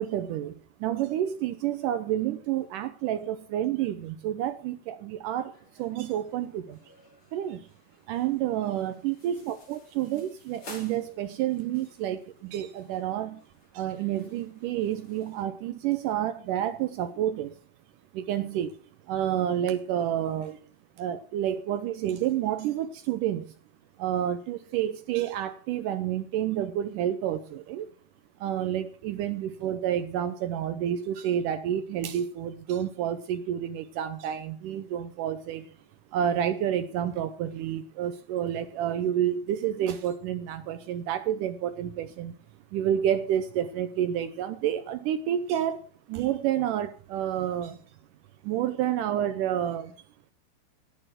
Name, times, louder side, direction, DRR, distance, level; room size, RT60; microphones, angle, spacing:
voice 1, 0.0-6.8 7.3-7.7 8.1-13.4 13.7-17.6 18.1-18.8 19.1-20.6 21.0-23.5 24.0-27.9 28.4-35.7 36.1-42.3 42.7-47.8 48.4-49.9, right 10 dB, 85° right, 1.9 m, -29 dB
sound 1, 5.5-15.4, left 2 dB, 35° left, 3.9 m, -54 dB
12.0 x 9.0 x 5.9 m
omnidirectional pair, 4.5 m